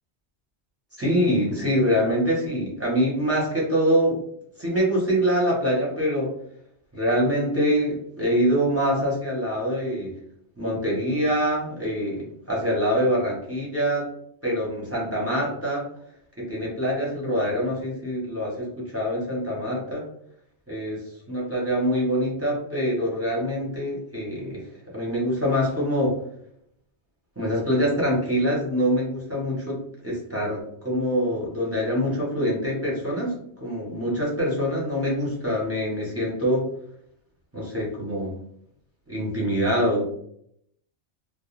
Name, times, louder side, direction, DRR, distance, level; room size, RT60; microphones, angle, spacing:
voice 1, 1.0-4.2 4.6-6.3 6.9-10.1 10.6-14.1 14.4-15.9 16.4-20.1 20.7-21.0 21.3-24.7 24.9-26.2 27.4-33.3 33.6-36.7 37.5-38.4 39.1-40.0, equal, 15° right, -5 dB, 0.7 m, -24 dB
2.4 x 2.0 x 3.0 m, 0.69 s
omnidirectional pair, 1.2 m